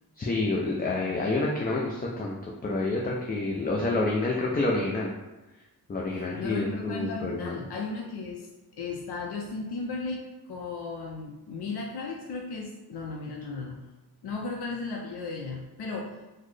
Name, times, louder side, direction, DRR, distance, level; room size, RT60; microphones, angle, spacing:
voice 1, 0.2-5.1 5.9-7.6, left 2 dB, 25° left, -2 dB, 0.4 m, -28 dB
voice 2, 6.1-8.5 8.8-13.8 14.2-16.2, left 3 dB, 85° left, 0 dB, 0.5 m, -35 dB
4.0 x 2.1 x 3.1 m, 1.0 s
wide cardioid pair, 115°, 38 cm